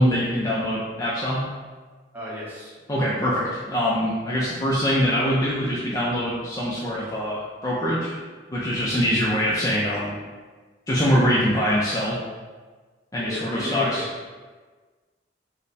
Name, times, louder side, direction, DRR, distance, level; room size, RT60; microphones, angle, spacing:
voice 1, 0.0-1.4 2.9-8.2 8.5-10.2 10.9-12.2 13.1-14.1, equal, 20° left, -7 dB, 0.4 m, -23 dB
voice 2, 2.1-2.7 13.2-14.0, left 1 dB, 10° right, -8 dB, 0.9 m, -33 dB
3.2 x 2.1 x 4.0 m, 1.4 s
head